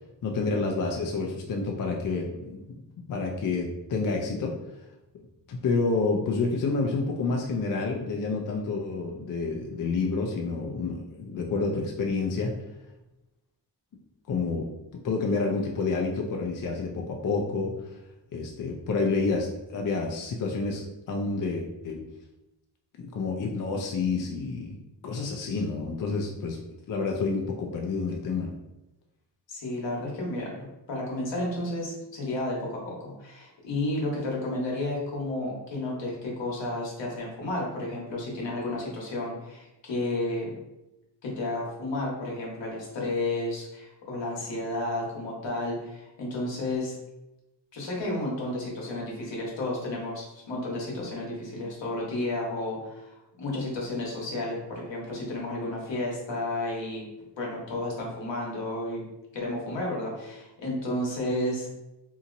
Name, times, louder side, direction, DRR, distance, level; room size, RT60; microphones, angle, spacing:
voice 1, 0.2-2.8 3.1-4.6 5.5-12.5 14.3-14.7 15.0-17.7 18.3-22.0 23.0-26.6 26.9-28.5, left 4 dB, 50° left, 1 dB, 0.5 m, -29 dB
voice 2, 29.5-40.5 41.2-47.0 47.7-57.0 57.4-59.0 59.3-61.7, left 1 dB, 85° left, -3 dB, 1.1 m, -32 dB
2.8 x 2.7 x 2.5 m, 0.93 s
cardioid pair, 75°, 43 cm